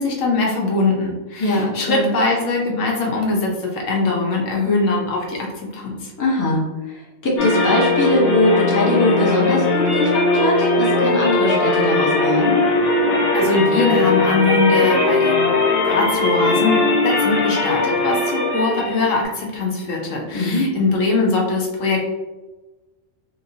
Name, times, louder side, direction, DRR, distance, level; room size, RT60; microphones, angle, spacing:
voice 1, 0.0-6.1 13.3-15.5 15.8-22.0, left 3 dB, 80° left, -1 dB, 1.1 m, -21 dB
voice 2, 1.4-2.1 6.2-12.6 20.3-20.7, left 1 dB, 20° left, -4 dB, 0.6 m, -21 dB
sound 1, 7.4-19.2, left 2 dB, 55° left, 0.8 m, -19 dB
2.9 x 2.9 x 2.7 m, 1.1 s
omnidirectional pair, 1.3 m